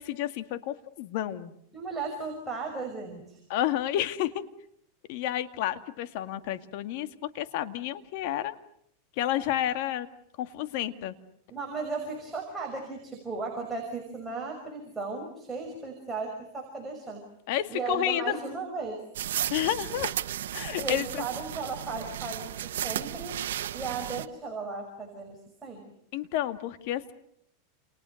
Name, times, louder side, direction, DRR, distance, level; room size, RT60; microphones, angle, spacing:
voice 1, 0.0-1.5 3.5-4.4 5.1-8.6 9.2-10.1 10.4-11.1 17.5-18.3 19.5-20.2 20.5-21.2 26.1-27.1, left 12 dB, 60° left, 10 dB, 2.1 m, -30 dB
voice 2, 1.7-3.4 11.5-17.2 17.7-19.0 20.8-23.4 23.7-25.8, right 4 dB, 10° right, -1 dB, 5.9 m, -36 dB
sound 1, 19.1-24.3, right 11 dB, 90° right, 1.3 m, -34 dB
29.5 x 29.5 x 6.6 m, 0.70 s
supercardioid pair, 140°, 0 cm